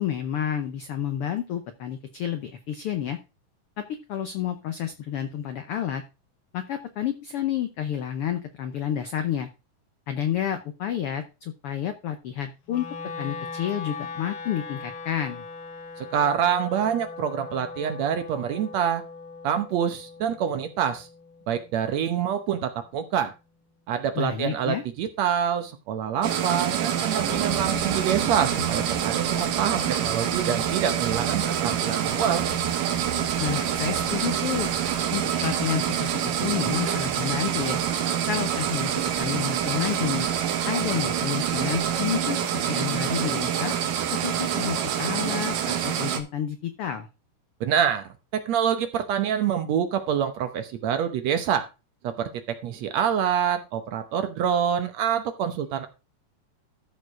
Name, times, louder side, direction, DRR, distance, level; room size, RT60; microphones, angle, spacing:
voice 1, 0.0-3.2 3.8-6.0 6.5-9.5 10.1-12.9 13.2-15.4 24.2-24.8 33.4-34.7 35.1-37.8 38.3-40.3 40.7-43.7 44.1-47.1, left 10 dB, 80° left, 8 dB, 1.3 m, -30 dB
Wind instrument woodwind instrument, 12.7-22.8, left 4 dB, 50° left, 1.9 m, -40 dB
voice 2, 16.0-19.0 19.4-21.1 21.5-23.3 23.9-32.4 47.6-51.7 52.0-55.9, right 8 dB, 65° right, 8 dB, 1.9 m, -26 dB
sound 1, 26.2-46.2, right 9 dB, 90° right, 2.9 m, -26 dB
sound 2, 27.2-42.2, right 3 dB, 30° right, 2.2 m, -40 dB
13.5 x 4.7 x 4.7 m, 0.30 s
omnidirectional pair, 3.7 m